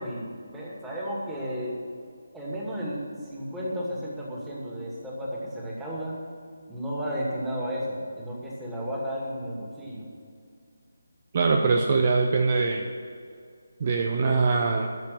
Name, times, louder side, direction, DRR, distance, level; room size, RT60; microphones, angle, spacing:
voice 1, 0.0-1.8 2.3-6.2 6.7-10.0, equal, 5° right, -6 dB, 2.3 m, -33 dB
voice 2, 11.3-12.8 13.8-14.9, right 4 dB, 35° right, 3 dB, 0.8 m, -22 dB
13.5 x 7.4 x 9.3 m, 2.3 s
figure-of-eight pair, 150°, 0 cm